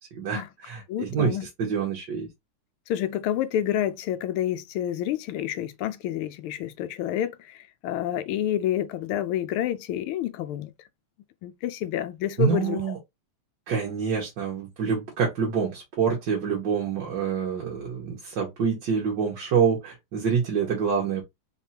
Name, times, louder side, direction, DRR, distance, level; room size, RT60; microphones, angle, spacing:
voice 1, 0.1-2.3 12.4-13.0 13.7-21.2, right 6 dB, 65° right, 1.8 m, -26 dB
voice 2, 0.9-1.5 2.9-10.7 11.4-12.8, left 11 dB, 85° left, 1.5 m, -28 dB
4.1 x 3.5 x 2.8 m
omnidirectional pair, 2.3 m